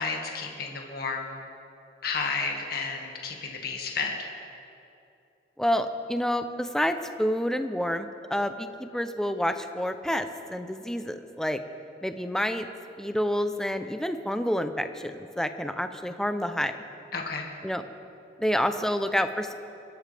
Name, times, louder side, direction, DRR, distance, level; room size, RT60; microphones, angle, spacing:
voice 1, 0.0-1.4 2.0-4.3 17.1-17.5, left 4 dB, 55° left, 0 dB, 1.9 m, -32 dB
voice 2, 5.6-11.6 12.0-12.7 13.0-16.7 17.6-17.8 18.4-19.5, equal, 5° left, 8 dB, 0.6 m, -28 dB
24.0 x 12.5 x 3.5 m, 2.7 s
head